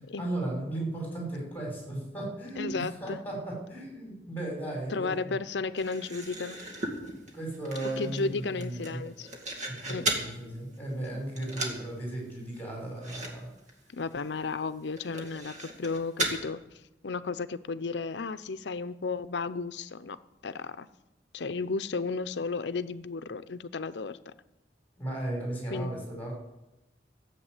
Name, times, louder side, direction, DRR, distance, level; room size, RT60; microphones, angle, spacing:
voice 1, 0.2-5.3 7.3-9.0 9.7-13.5 25.0-26.3, right 1 dB, 10° left, -2 dB, 6.2 m, -36 dB
voice 2, 2.6-3.2 4.9-6.6 8.0-9.3 9.9-10.1 13.9-16.6 17.0-20.2 20.4-20.9 21.3-24.3 25.7-25.9, left 4 dB, 80° left, 14 dB, 0.6 m, -33 dB
sound 1, 5.8-10.3 10.7-11.1 11.4-11.8 12.1-12.2 12.5-12.6 13.0-13.3 13.6-13.7 14.2-14.3 15.0-16.4, right 1 dB, 40° right, 2.3 m, -36 dB
14.0 x 8.0 x 8.2 m, 0.95 s
head